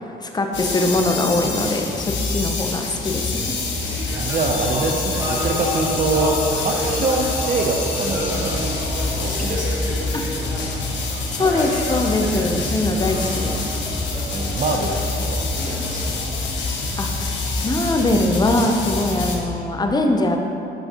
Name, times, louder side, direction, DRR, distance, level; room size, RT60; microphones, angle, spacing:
voice 1, 0.2-3.5 10.1-10.2 11.3-13.6 17.0-17.1 17.6-20.4, left 2 dB, 20° left, 3 dB, 0.6 m, -22 dB
sound 1, 0.5-19.4, left 3 dB, 65° left, 1.0 m, -26 dB
sound 2, 3.6-17.2, equal, 15° right, 1.3 m, -31 dB
voice 2, 4.1-6.4 6.6-8.6 9.2-9.7 12.9-13.4 14.3-16.0, right 3 dB, 40° right, 3 dB, 0.6 m, -25 dB
7.4 x 5.3 x 2.9 m, 2.9 s
cardioid pair, 90°, 20 cm